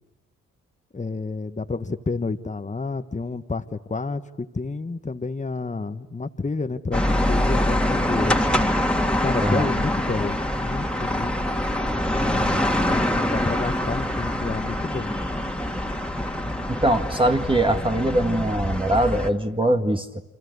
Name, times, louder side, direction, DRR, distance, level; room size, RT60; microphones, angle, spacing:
voice 1, 0.9-8.4 9.2-11.3 12.1-15.1, left 3 dB, 20° left, 9 dB, 1.4 m, -30 dB
sound 1, 6.9-19.3, left 1 dB, 5° left, 2.6 m, -24 dB
voice 2, 9.4-9.7 16.7-20.2, right 1 dB, 15° right, 5 dB, 1.9 m, -22 dB
29.5 x 24.5 x 8.2 m, 1.0 s
supercardioid pair, 50°, 32 cm